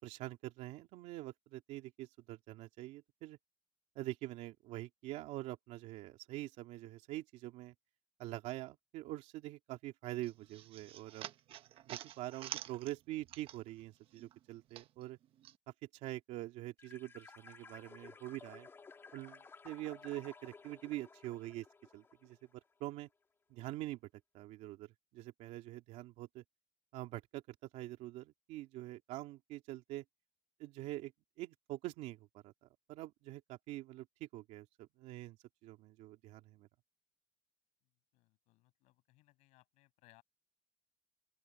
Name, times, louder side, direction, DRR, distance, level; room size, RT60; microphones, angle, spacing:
voice 1, 0.0-3.4 3.9-7.7 8.2-11.3 11.9-15.2 16.0-18.7 19.1-21.7 21.9-22.4 22.8-23.1 23.5-24.0 24.3-26.4 26.9-30.0 30.6-31.1 31.4-35.4 35.6-36.7, right 16 dB, 80° right, 2.9 m, -45 dB
sound 1, 10.2-13.9 14.1-15.6, right 12 dB, 50° right, 1.1 m, -48 dB
sound 2, 16.8-22.5, left 4 dB, 20° left, 2.5 m, -56 dB
voice 2, 38.1-40.2, left 20 dB, 85° left, 7.3 m, -68 dB
open air
cardioid pair, 165°, 12 cm